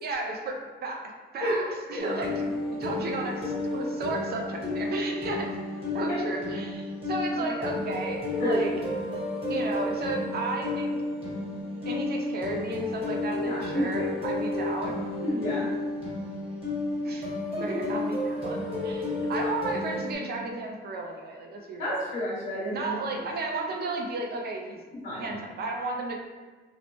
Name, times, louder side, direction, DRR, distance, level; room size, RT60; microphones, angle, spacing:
voice 1, 0.0-1.0 1.3-5.5 5.9-8.7 9.5-10.9 11.9-15.0 17.0-17.3 17.6-22.0 22.7-24.8 25.1-26.1, right 2 dB, 55° right, 1 dB, 0.5 m, -34 dB
sound 1, 2.0-20.2, left 2 dB, 30° right, 1.1 m, -32 dB
voice 2, 13.4-14.1 15.2-15.7 17.6-17.8 21.8-22.9 24.9-25.3, equal, 55° left, -9 dB, 1.0 m, -30 dB
2.7 x 2.0 x 3.0 m, 1.4 s
cardioid pair, 90°, 20 cm